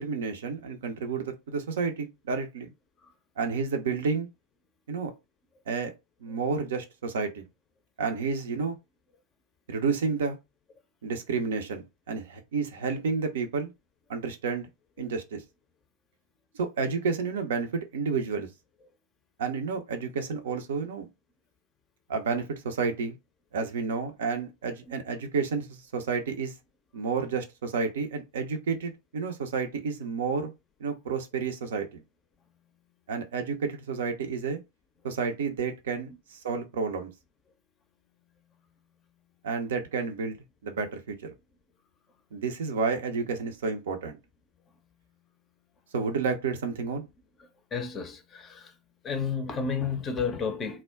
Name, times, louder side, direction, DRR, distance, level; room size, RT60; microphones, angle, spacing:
voice 1, 0.0-2.7 3.4-4.3 4.9-5.1 5.7-5.9 6.2-7.4 8.0-8.8 9.7-10.4 11.0-13.7 14.1-14.7 15.0-15.4 16.6-18.5 19.4-21.1 22.1-23.1 23.5-26.5 26.9-30.5 30.8-32.0 33.1-34.6 35.0-37.1 39.4-40.4 40.6-41.3 42.3-44.1 45.9-47.1, right 5 dB, 60° right, 0.5 m, -30 dB
voice 2, 47.4-48.7 49.0-50.8, left 5 dB, 25° left, 0.5 m, -32 dB
2.2 x 2.1 x 3.4 m
figure-of-eight pair, 90°, 0 cm